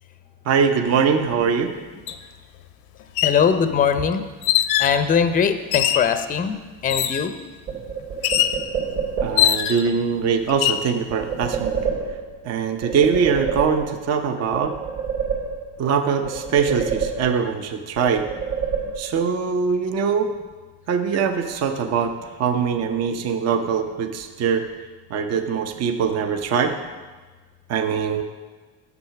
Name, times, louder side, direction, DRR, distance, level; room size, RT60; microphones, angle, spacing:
voice 1, 0.4-1.7 9.2-11.8 12.4-14.8 15.8-18.3 19.0-20.3 20.9-24.7 25.1-26.8 27.7-28.2, right 6 dB, 40° right, 6 dB, 0.8 m, -22 dB
sound 1, 2.1-2.2 3.0-3.4 4.4-5.0 5.7-6.1 6.9-7.3 8.2-8.6 9.4-9.9 10.5-10.9, left 12 dB, 70° left, 0.7 m, -21 dB
voice 2, 3.2-4.2 4.8-6.6 6.8-7.3, left 7 dB, 20° left, 9 dB, 0.6 m, -20 dB
sound 2, 7.7-9.6 11.1-12.5 12.8-14.2 14.5-15.9 16.2-17.6 18.0-19.3, right 6 dB, 90° right, 3.2 m, -28 dB
9.6 x 7.4 x 5.8 m, 1.3 s
cardioid pair, 125°, 38 cm